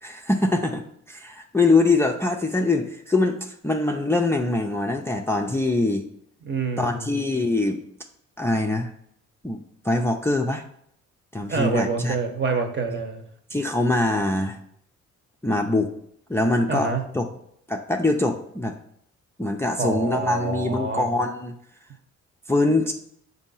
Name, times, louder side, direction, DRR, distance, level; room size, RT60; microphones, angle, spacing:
voice 1, 0.0-6.1 6.8-7.8 8.4-8.9 9.4-10.6 11.3-12.2 13.5-14.6 15.4-15.9 16.3-17.3 17.7-18.7 19.4-21.6 22.5-22.9, left 2 dB, 10° left, 3 dB, 0.5 m, -23 dB
voice 2, 6.4-7.1 11.5-13.2 16.7-17.0 19.8-21.1, right 4 dB, 40° right, 5 dB, 1.0 m, -27 dB
6.5 x 2.7 x 5.4 m, 0.70 s
cardioid pair, 90°, 30 cm